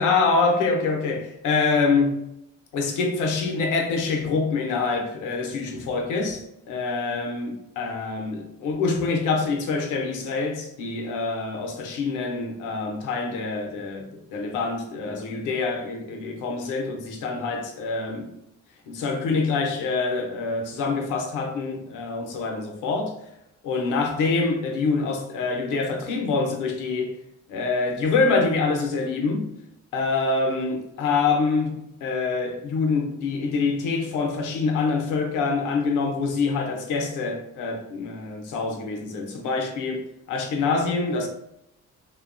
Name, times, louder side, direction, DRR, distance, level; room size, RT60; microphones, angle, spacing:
voice 1, 0.0-2.2 2.7-18.3 18.9-23.1 23.6-27.2 27.5-29.5 29.9-41.3, left 4 dB, 90° left, 0.6 m, -25 dB
2.8 x 2.2 x 2.5 m
cardioid pair, 90°, 30 cm